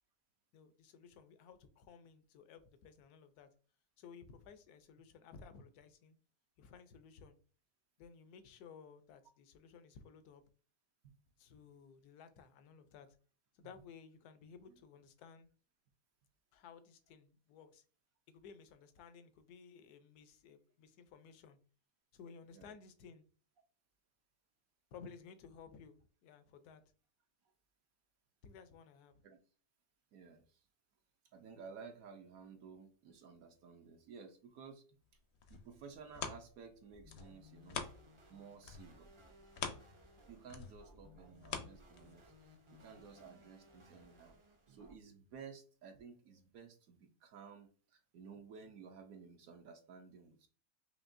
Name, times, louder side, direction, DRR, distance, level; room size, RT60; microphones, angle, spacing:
voice 1, 0.5-3.5 4.0-6.2 6.6-7.4 8.0-10.4 11.4-13.2 13.5-15.5 16.5-17.8 18.3-21.6 22.1-23.3 24.9-26.8 28.4-29.2, left 6 dB, 80° left, 1.1 m, -57 dB
voice 2, 30.1-30.6 31.3-34.8 35.5-37.8 38.3-39.1 40.3-44.4 44.7-50.5, right 5 dB, 70° right, 1.1 m, -55 dB
sound 1, 35.1-38.3 38.6-42.4 42.9-43.0, left 6 dB, 60° left, 0.7 m, -46 dB
sound 2, 36.9-44.9, left 1 dB, 40° right, 0.4 m, -62 dB
5.1 x 2.8 x 2.5 m
omnidirectional pair, 1.7 m